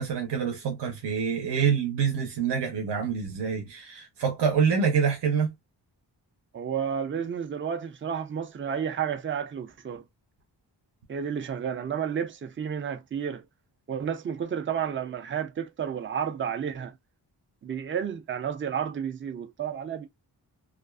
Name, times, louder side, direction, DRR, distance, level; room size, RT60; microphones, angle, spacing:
voice 1, 0.0-5.5, right 6 dB, 80° right, 0.8 m, -26 dB
voice 2, 6.5-10.0 11.1-13.4 13.9-16.9 17.6-20.1, right 8 dB, 30° right, 0.4 m, -31 dB
2.4 x 2.4 x 2.2 m
wide cardioid pair, 140°, 41 cm